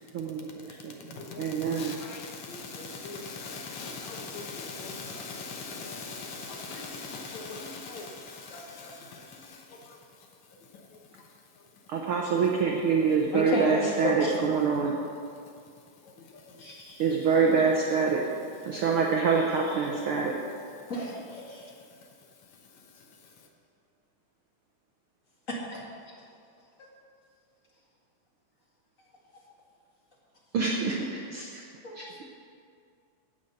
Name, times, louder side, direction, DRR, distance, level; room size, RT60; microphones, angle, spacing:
voice 1, 0.1-2.0 11.9-15.0 17.0-18.2 18.6-20.3 30.5-31.5 31.9-32.2, right 5 dB, 80° right, 0 dB, 1.2 m, -26 dB
voice 2, 1.1-12.5 12.8-13.1 16.0-17.3 18.0-18.2 18.5-19.1 19.9-22.1 22.4-23.5, left 4 dB, 65° left, 1 dB, 2.2 m, -43 dB
voice 3, 13.3-14.3 16.6-17.0 20.9-21.7 25.5-25.8 31.8-32.0, left 1 dB, 30° left, -4 dB, 1.8 m, -32 dB
16.5 x 5.6 x 6.4 m, 2.3 s
omnidirectional pair, 3.7 m